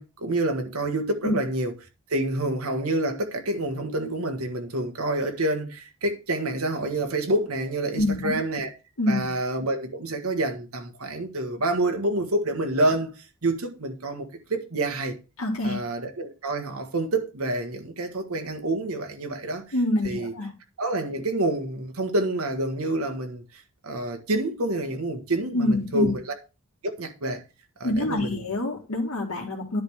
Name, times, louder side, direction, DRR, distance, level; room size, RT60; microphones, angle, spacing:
voice 1, 0.0-1.7 2.1-8.7 9.1-13.1 13.4-15.1 15.6-19.6 20.0-20.3 20.8-26.4 26.8-27.4 27.8-28.4, right 1 dB, 90° right, 1.5 m, -28 dB
voice 2, 8.0-8.3 9.0-9.2 15.4-15.8 19.7-20.5 25.5-26.1 27.8-29.8, left 1 dB, 80° left, 2.1 m, -25 dB
10.5 x 3.5 x 6.3 m
head